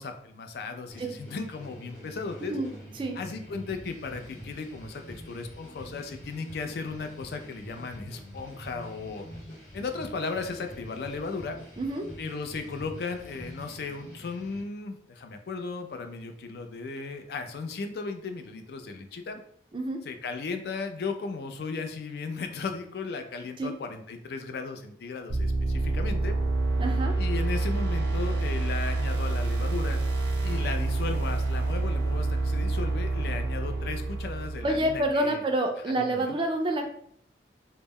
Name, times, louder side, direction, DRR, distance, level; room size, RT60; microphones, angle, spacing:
voice 1, 0.0-2.6 3.1-9.3 9.7-11.6 12.2-19.4 20.0-26.4 27.2-30.0 30.4-35.4 35.9-36.4, left 4 dB, 60° left, 6 dB, 0.3 m, -36 dB
sound 1, 0.9-14.6, equal, 45° left, 0.8 m, -45 dB
sound 2, 25.3-35.1, right 2 dB, 85° right, 0.5 m, -28 dB
voice 2, 26.8-27.1 34.6-36.9, right 1 dB, 25° right, 4 dB, 0.3 m, -28 dB
2.1 x 2.0 x 3.4 m, 0.62 s
head